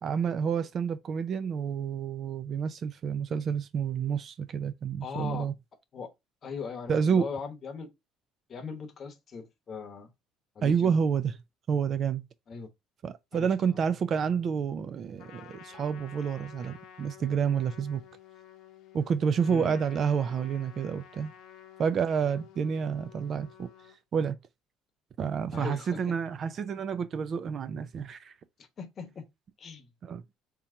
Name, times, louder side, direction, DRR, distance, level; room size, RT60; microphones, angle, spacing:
voice 1, 0.0-5.5 6.9-7.3 10.6-11.3 11.7-12.2 13.0-18.0 18.9-21.3 21.8-23.7 24.1-24.4 25.2-28.3 30.0-30.2, right 7 dB, 40° right, 0.4 m, -29 dB
voice 2, 5.0-5.5 5.9-6.1 6.4-7.9 8.5-10.1 10.5-10.9 12.5-12.7 13.3-13.8 19.5-19.8 25.5-26.1 28.8-29.3 29.6-29.9, left 5 dB, 35° left, 1.0 m, -39 dB
Trumpet, 15.2-24.0, left 9 dB, 60° left, 0.9 m, -51 dB
3.6 x 2.9 x 4.4 m
cardioid pair, 140°, 0 cm